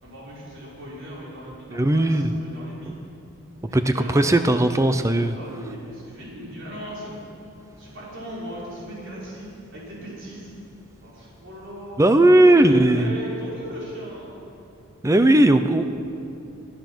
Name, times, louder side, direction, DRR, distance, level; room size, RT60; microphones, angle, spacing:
voice 1, 0.0-3.0 3.7-4.5 5.3-7.1 7.8-10.6 11.0-14.3, right 1 dB, 55° right, -6 dB, 5.1 m, -38 dB
voice 2, 1.7-2.3 3.7-5.4 12.0-13.1 15.0-15.8, right 1 dB, 15° right, 9 dB, 0.5 m, -17 dB
22.0 x 10.5 x 6.1 m, 2.7 s
head